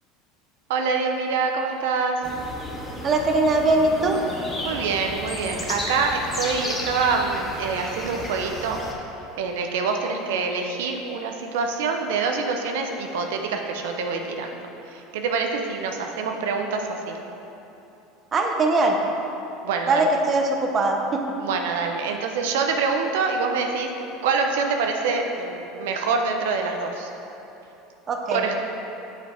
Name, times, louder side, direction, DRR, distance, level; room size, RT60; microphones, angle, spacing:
voice 1, 0.7-2.2 4.6-8.8 9.4-17.2 19.6-20.1 21.4-23.9 24.2-27.1 28.3-28.5, right 4 dB, 85° right, 3 dB, 0.6 m, -25 dB
sound 1, 2.2-8.9, left 1 dB, 15° left, 0.9 m, -33 dB
voice 2, 3.0-4.2 18.3-19.0 19.9-21.2 28.1-28.4, right 2 dB, 30° right, 2 dB, 0.7 m, -21 dB
7.3 x 5.1 x 4.4 m, 3.0 s
supercardioid pair, 125°, 0 cm